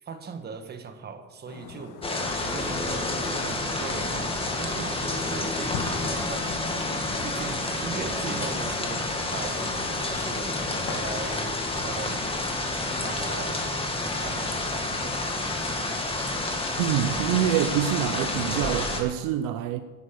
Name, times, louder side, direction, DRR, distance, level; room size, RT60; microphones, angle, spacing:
voice 1, 0.0-2.0 2.5-6.7 7.2-10.5 10.9-12.3 13.0-13.7 13.9-15.7 16.7-16.8, right 5 dB, 30° right, 7 dB, 1.4 m, -39 dB
sound 1, 1.5-11.2, left 6 dB, 65° left, 1.6 m, -42 dB
sound 2, 2.0-19.0, left 2 dB, 15° left, 1.9 m, -29 dB
voice 2, 16.8-19.8, right 11 dB, 70° right, 10 dB, 0.8 m, -26 dB
11.0 x 10.5 x 6.7 m, 1.3 s
cardioid pair, 125°, 34 cm